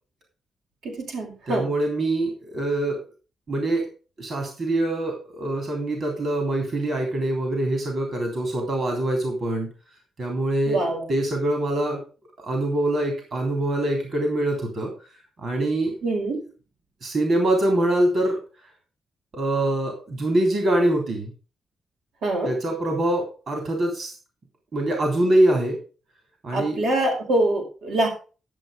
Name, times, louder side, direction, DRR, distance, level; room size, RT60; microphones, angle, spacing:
voice 1, 0.8-1.7 10.7-11.1 16.0-16.4 22.2-22.5 26.5-28.1, right 1 dB, 85° right, 1 dB, 5.4 m, -24 dB
voice 2, 1.5-3.0 3.5-3.8 4.2-9.7 10.2-12.0 12.4-14.9 15.4-15.9 17.0-18.4 19.3-21.3 22.4-24.1 24.7-25.8 26.4-26.9, right 1 dB, 45° right, 2 dB, 3.4 m, -24 dB
12.0 x 7.5 x 5.2 m, 0.36 s
cardioid pair, 130°, 0 cm